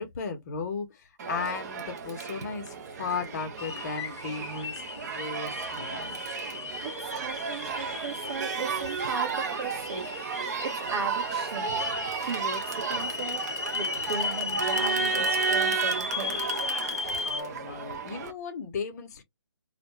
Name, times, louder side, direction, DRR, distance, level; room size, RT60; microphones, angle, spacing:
voice 1, 0.0-6.2 7.5-7.6 9.4-9.5 15.0-15.2 17.2-19.2, left 5 dB, 40° left, 0.6 m, -36 dB
Crowd, 1.2-18.3, right 6 dB, 40° right, 0.5 m, -33 dB
sound 1, 3.6-17.4, left 5 dB, 85° left, 0.5 m, -35 dB
voice 2, 6.8-10.1 10.6-11.7 12.2-13.4 13.7-16.5, right 4 dB, 65° right, 0.8 m, -37 dB
2.5 x 2.1 x 3.0 m
hypercardioid pair, 155°, 14 cm